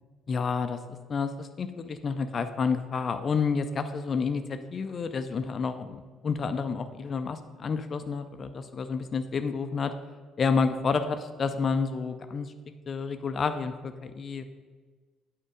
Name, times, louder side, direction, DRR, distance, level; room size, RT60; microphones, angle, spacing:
voice 1, 0.3-9.9 10.4-12.5 12.9-14.4, left 5 dB, 40° left, 9 dB, 0.5 m, -30 dB
8.6 x 4.5 x 5.0 m, 1.4 s
figure-of-eight pair, 50°, 0 cm